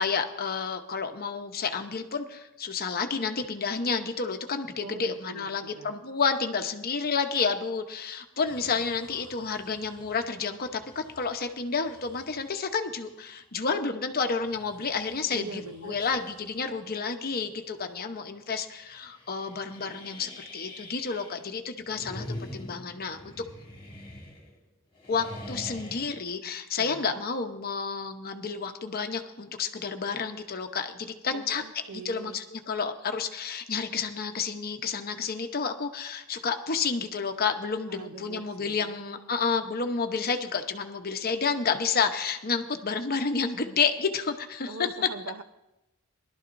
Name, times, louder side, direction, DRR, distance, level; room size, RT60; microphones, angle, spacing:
voice 1, 0.0-23.3 25.1-31.6 31.9-44.9, left 5 dB, 45° left, 6 dB, 0.9 m, -30 dB
voice 2, 4.8-5.9 15.3-16.0 26.8-27.2 31.3-32.4 37.9-38.9 44.6-45.4, right 3 dB, 70° right, 9 dB, 0.8 m, -42 dB
sound 1, 8.4-12.6 13.2-13.3 14.3-16.9 17.3-17.7 18.0-18.1 18.7-21.5 21.8-24.7 24.9-26.2, left 1 dB, 20° left, 2.1 m, -45 dB
21.0 x 12.0 x 2.6 m, 0.92 s
head